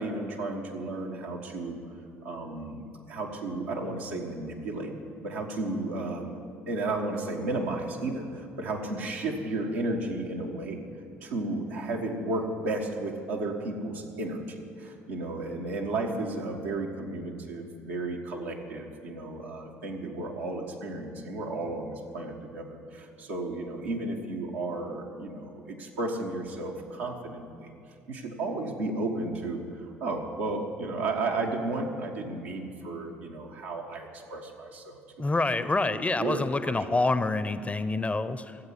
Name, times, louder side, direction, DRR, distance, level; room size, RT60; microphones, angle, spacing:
voice 1, 0.0-1.8 2.2-4.9 5.2-6.4 6.7-10.8 11.2-27.7 28.1-35.0 35.6-36.8, right 2 dB, 80° right, -1 dB, 1.5 m, -33 dB
voice 2, 35.2-38.6, left 3 dB, 20° left, 13 dB, 0.7 m, -27 dB
14.5 x 7.9 x 8.4 m, 2.4 s
hypercardioid pair, 55°, 7 cm